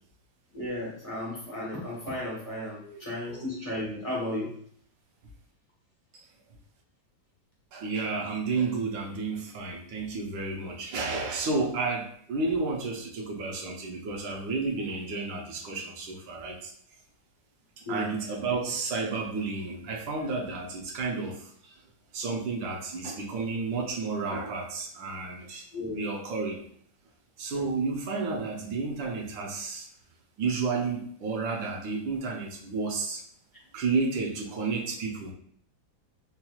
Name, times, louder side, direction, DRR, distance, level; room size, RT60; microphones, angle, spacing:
voice 1, 0.5-4.5 17.9-18.1 25.7-26.0, left 1 dB, 20° left, -5 dB, 1.1 m, -34 dB
voice 2, 2.8-3.4 7.7-16.7 17.9-21.7 22.1-26.6 27.4-29.9 30.4-33.2 33.7-35.3, right 4 dB, 80° right, 0 dB, 1.5 m, -31 dB
4.8 x 2.9 x 2.3 m, 0.62 s
omnidirectional pair, 2.1 m